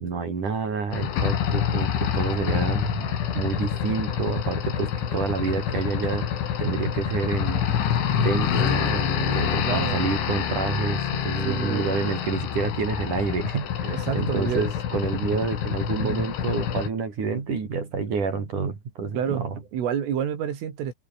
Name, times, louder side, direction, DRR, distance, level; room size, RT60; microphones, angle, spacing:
voice 1, 0.0-6.3 6.6-19.6, right 5 dB, 40° right, 5.3 m, -28 dB
sound 1, 0.9-16.9, left 9 dB, 70° left, 5.5 m, -27 dB
voice 2, 9.6-10.1 11.5-11.8 13.8-14.6 16.0-16.3 19.1-19.4 19.7-20.9, right 9 dB, 85° right, 6.1 m, -28 dB
omnidirectional pair, 5.6 m